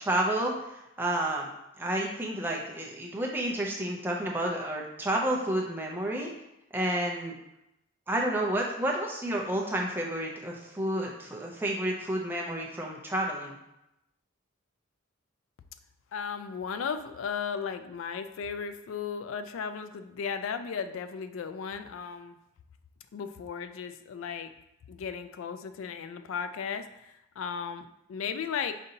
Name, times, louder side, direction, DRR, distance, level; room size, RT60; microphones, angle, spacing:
voice 1, 0.0-1.5 1.8-6.3 6.7-7.3 8.1-13.6, right 1 dB, 10° right, -1 dB, 0.4 m, -30 dB
voice 2, 16.1-22.4 23.1-24.5 24.9-28.7, left 6 dB, 70° left, 10 dB, 0.3 m, -35 dB
5.1 x 2.7 x 2.7 m, 0.86 s
head